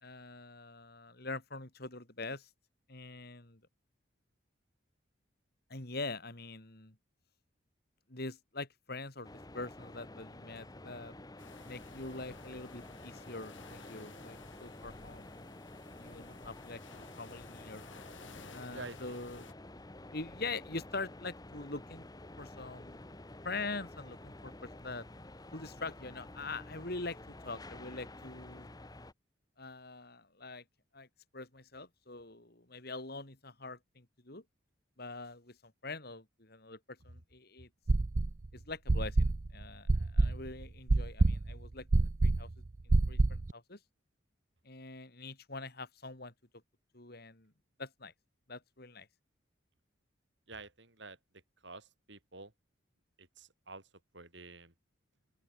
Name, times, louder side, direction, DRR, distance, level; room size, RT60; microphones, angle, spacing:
voice 1, 0.0-2.5 2.9-3.6 5.7-6.9 8.1-9.3 9.5-11.1 11.7-15.3 16.0-17.8 18.5-19.5 20.1-22.1 22.4-23.0 23.4-25.0 25.5-28.7 29.6-30.6 30.9-31.1 31.3-34.4 35.0-35.6 35.8-37.7 38.5-42.5 43.1-43.8 44.6-46.3 46.9-47.5 47.8-48.1 48.5-49.1, left 3 dB, 50° left, 3.1 m, -44 dB
sound 1, 9.2-29.1, left 1 dB, 20° left, 1.0 m, -50 dB
sound 2, 11.4-19.5, left 4 dB, 70° left, 4.1 m, -56 dB
voice 2, 18.7-19.3 50.5-51.2 51.6-52.5 53.2-54.7, right 3 dB, 60° right, 5.1 m, -49 dB
sound 3, 37.9-38.5 38.9-43.5, right 2 dB, 40° right, 0.6 m, -27 dB
open air
head